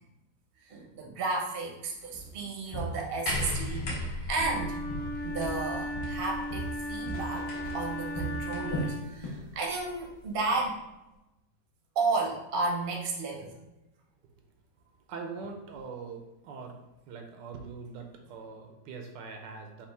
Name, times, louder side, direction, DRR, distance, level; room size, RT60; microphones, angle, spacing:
voice 1, 0.7-4.0 4.3-4.8 5.2-7.5 7.7-10.8 12.0-13.5, right 3 dB, 50° right, 0 dB, 0.7 m, -32 dB
Walk footsteps, 2.1-2.4 2.7-4.1 4.4-5.7 6.0-9.5 9.8-10.0 10.5-10.6, right 2 dB, 60° left, 0.3 m, -38 dB
sound 1, 3.3-8.9 9.9-10.0, left 1 dB, 80° left, 1.6 m, -38 dB
Wind instrument woodwind instrument, 4.4-9.2, left 1 dB, 40° left, 1.1 m, -37 dB
voice 2, 15.1-16.8 17.1-19.9, right 4 dB, 80° right, 4 dB, 1.3 m, -42 dB
5.4 x 2.4 x 3.4 m, 0.97 s
omnidirectional pair, 1.9 m